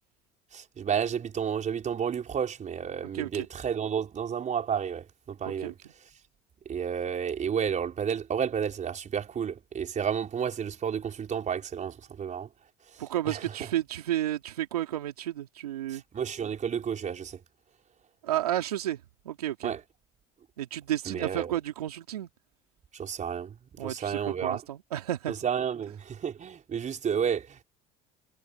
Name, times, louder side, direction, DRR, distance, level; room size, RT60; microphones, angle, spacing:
voice 1, 0.5-5.7 6.7-12.5 12.9-13.4 15.9-17.4 19.6-19.8 21.1-21.5 22.9-24.6 25.3-27.6, right 7 dB, 40° right, 5.3 m, -31 dB
voice 2, 3.1-3.5 5.5-5.7 13.0-16.0 18.2-19.0 19.2-19.7 20.6-22.3 23.8-25.3, right 13 dB, 90° right, 2.5 m, -32 dB
hypercardioid pair, 70°, 19 cm